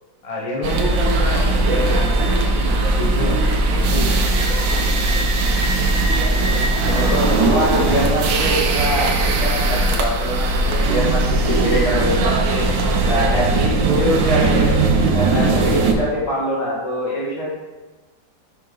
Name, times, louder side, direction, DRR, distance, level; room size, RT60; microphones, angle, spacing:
voice 1, 0.2-4.4, left 1 dB, 25° left, -4 dB, 1.0 m, -29 dB
sound 1, 0.6-15.9, right 2 dB, 80° right, 1.5 m, -18 dB
voice 2, 6.8-12.7 13.1-14.8 15.1-17.6, equal, 60° left, -6 dB, 2.5 m, -24 dB
6.6 x 5.4 x 3.8 m, 1.2 s
omnidirectional pair, 2.0 m